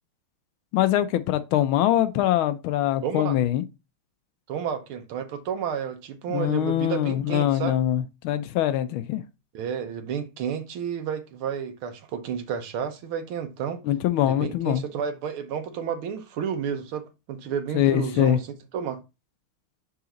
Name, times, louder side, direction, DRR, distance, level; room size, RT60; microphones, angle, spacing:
voice 1, 0.7-3.6 6.3-9.2 13.9-14.8 17.7-18.4, left 12 dB, 80° left, 1.4 m, -23 dB
voice 2, 3.0-3.4 4.5-7.8 9.5-13.8 14.2-18.5 18.7-19.0, right 7 dB, 80° right, 1.8 m, -31 dB
5.7 x 5.0 x 3.8 m
omnidirectional pair, 2.3 m